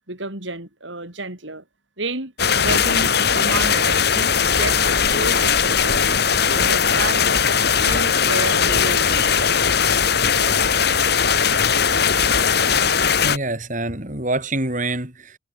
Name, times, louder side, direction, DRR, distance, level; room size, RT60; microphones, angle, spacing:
voice 1, 0.1-1.6 2.0-6.2 6.5-7.4 7.9-9.6, right 2 dB, 70° right, 6.2 m, -31 dB
sound 1, 2.4-13.4, left 6 dB, 55° left, 1.9 m, -19 dB
sound 2, 5.4-5.6 6.2-7.0 7.5-8.4 8.8-9.5 9.9-11.1, right 1 dB, 10° right, 5.1 m, -40 dB
voice 2, 13.2-15.4, right 2 dB, 40° right, 4.7 m, -26 dB
head